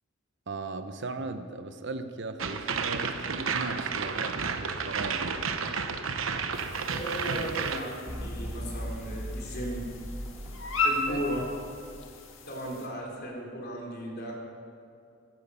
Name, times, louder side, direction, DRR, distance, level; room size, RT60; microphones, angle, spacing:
voice 1, 0.5-5.5 11.1-11.5, right 3 dB, 60° right, 9 dB, 0.9 m, -38 dB
sound 1, 2.4-7.8, right 5 dB, 90° right, 1.0 m, -31 dB
sound 2, 6.5-12.9, left 3 dB, 75° left, 2.0 m, -36 dB
voice 2, 6.8-9.9 10.8-11.4 12.5-14.3, equal, 55° left, -1 dB, 3.7 m, -36 dB
sound 3, 8.1-12.6, equal, 10° right, 1.8 m, -39 dB
15.5 x 15.0 x 5.7 m, 2.5 s
head